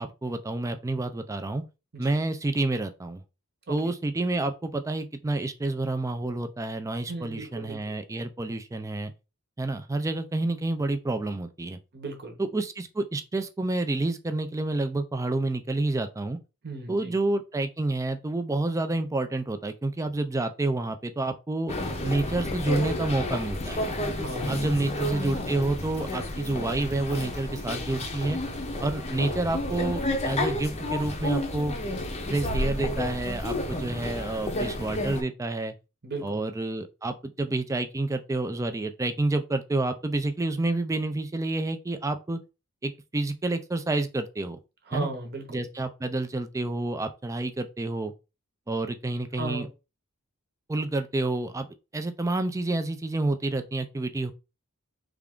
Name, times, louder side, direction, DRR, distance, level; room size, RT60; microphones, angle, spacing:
voice 1, 0.0-1.6 2.0-3.2 3.7-9.1 9.6-11.8 12.4-16.4 16.9-21.7 22.0-23.8 24.5-28.4 28.8-31.7 32.3-35.7 36.2-42.4 42.8-44.6 44.9-45.1 45.5-48.1 48.7-49.7 50.7-51.7 51.9-54.3, right 2 dB, 15° right, 0.3 m, -29 dB
voice 2, 7.1-8.0 11.9-12.4 16.6-17.1 24.1-24.7 36.0-36.4 44.9-45.6 49.3-49.7, right 3 dB, 45° right, 0.9 m, -36 dB
sound 1, 21.7-35.2, left 1 dB, 30° left, 0.6 m, -31 dB
3.4 x 2.4 x 3.5 m
head